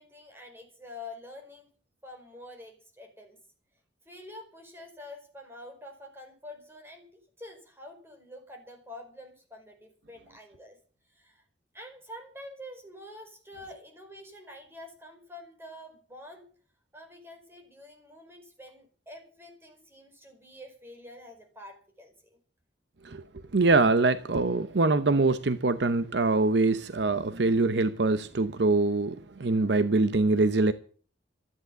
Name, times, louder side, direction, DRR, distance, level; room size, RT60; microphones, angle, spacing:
voice 1, 0.0-1.7 2.0-3.4 4.0-10.8 11.1-11.4 11.7-16.5 16.9-22.4, left 1 dB, 15° right, 4.8 m, -47 dB
voice 2, 23.5-30.7, right 3 dB, 65° right, 0.8 m, -24 dB
13.5 x 10.5 x 8.1 m
head